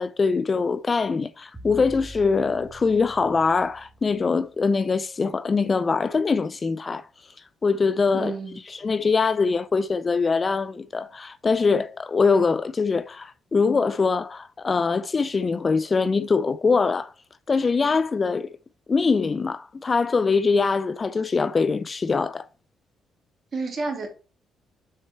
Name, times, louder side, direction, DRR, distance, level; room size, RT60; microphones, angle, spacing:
voice 1, 0.0-7.1 7.6-8.3 8.7-17.1 17.5-18.5 18.9-22.5, left 4 dB, 35° left, 0.4 m, -23 dB
sound 1, 1.5-4.6, equal, 10° right, 2.0 m, -45 dB
voice 2, 8.1-8.6 23.5-24.1, right 3 dB, 40° right, 2.3 m, -30 dB
6.6 x 4.4 x 4.3 m
cardioid pair, 90°, 0 cm